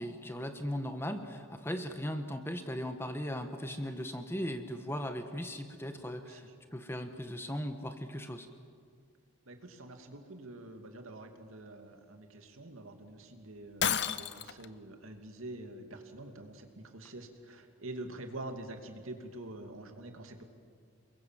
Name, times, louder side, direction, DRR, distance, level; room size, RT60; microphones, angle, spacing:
voice 1, 0.0-8.5, equal, 10° left, 7 dB, 1.3 m, -38 dB
voice 2, 9.5-20.4, right 1 dB, 85° right, 5 dB, 2.7 m, -46 dB
Shatter, 13.8-14.7, left 8 dB, 55° left, 0.8 m, -31 dB
29.5 x 22.0 x 7.5 m, 2.1 s
head